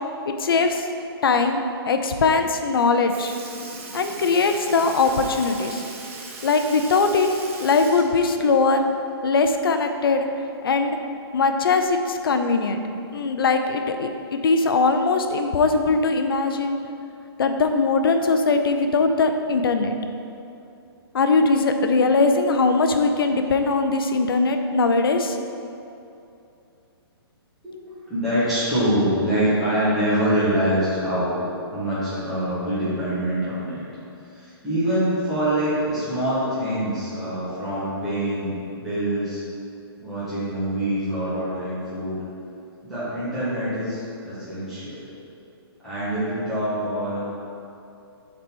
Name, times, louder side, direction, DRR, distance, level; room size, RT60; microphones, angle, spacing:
voice 1, 0.3-0.9 1.2-3.3 3.9-5.8 6.4-7.3 7.6-8.8 9.2-10.3 10.6-11.0 11.3-12.8 13.1-16.8 17.4-19.9 21.1-25.4, left 4 dB, 60° left, 6 dB, 0.6 m, -21 dB
Sink (filling or washing) / Liquid, 2.7-2.8 3.1-9.2 9.5-9.6 11.2-11.3 12.2-12.3 13.1-13.4 14.2-14.3, right 4 dB, 30° right, 0.6 m, -39 dB
voice 2, 27.6-31.5 31.7-33.9 34.2-39.4 39.9-42.2 42.8-45.1 45.8-47.2, equal, ahead, -16 dB, 1.4 m, -25 dB
7.5 x 4.1 x 4.5 m, 2.7 s
hypercardioid pair, 180°, 14 cm